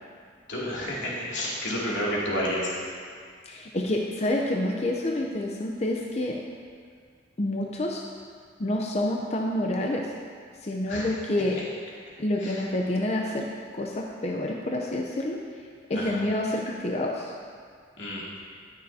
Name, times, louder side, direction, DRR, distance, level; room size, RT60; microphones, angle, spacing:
voice 1, 0.5-2.7 10.9-11.0 12.4-12.6 15.9-16.2 18.0-18.4, equal, 90° left, -6 dB, 2.7 m, -30 dB
voice 2, 3.5-6.4 7.4-8.0 8.6-10.1 10.6-11.6 12.2-13.5 13.7-17.4, left 1 dB, 35° left, 0 dB, 0.7 m, -28 dB
19.0 x 6.6 x 2.8 m, 2.1 s
head